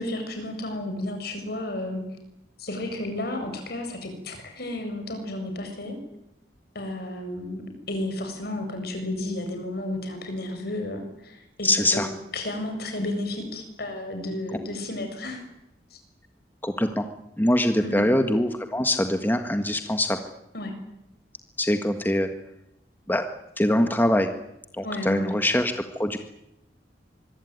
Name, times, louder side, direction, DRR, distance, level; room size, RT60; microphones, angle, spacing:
voice 1, 0.0-2.0 2.6-5.9 6.7-7.6 7.9-12.0 12.3-15.4 15.9-16.0 17.8-18.1 20.5-20.7 24.8-25.3, left 1 dB, 60° left, 5 dB, 7.6 m, -32 dB
voice 2, 11.6-12.1 16.6-17.0 17.4-20.2 21.6-22.3 23.1-23.3 23.6-24.3 24.8-26.2, left 1 dB, 10° left, 7 dB, 1.6 m, -23 dB
25.0 x 23.5 x 9.7 m, 0.86 s
head